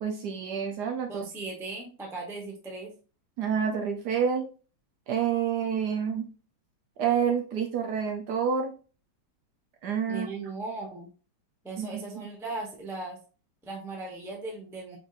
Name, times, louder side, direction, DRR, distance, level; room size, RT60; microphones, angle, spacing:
voice 1, 0.0-1.2 3.4-4.4 5.1-6.3 7.0-8.7 9.8-10.3 11.8-11.9, right 7 dB, 70° right, 4 dB, 1.1 m, -28 dB
voice 2, 1.1-2.9 10.1-11.1 11.6-13.2 13.6-15.0, right 3 dB, 5° right, -1 dB, 0.5 m, -37 dB
4.4 x 3.9 x 2.4 m, 0.37 s
omnidirectional pair, 2.2 m